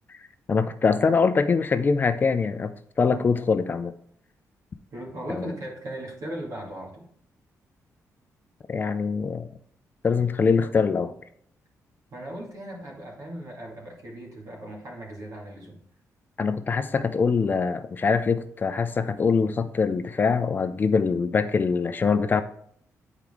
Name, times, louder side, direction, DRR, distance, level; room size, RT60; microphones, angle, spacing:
voice 1, 0.5-2.7 3.0-3.9 5.3-5.5 8.7-9.5 10.0-11.1 16.4-22.4, left 5 dB, 35° left, 11 dB, 0.4 m, -23 dB
voice 2, 4.9-7.1 12.1-15.8, right 1 dB, 70° right, -2 dB, 2.2 m, -38 dB
8.8 x 4.6 x 3.6 m, 0.64 s
cardioid pair, 135°, 6 cm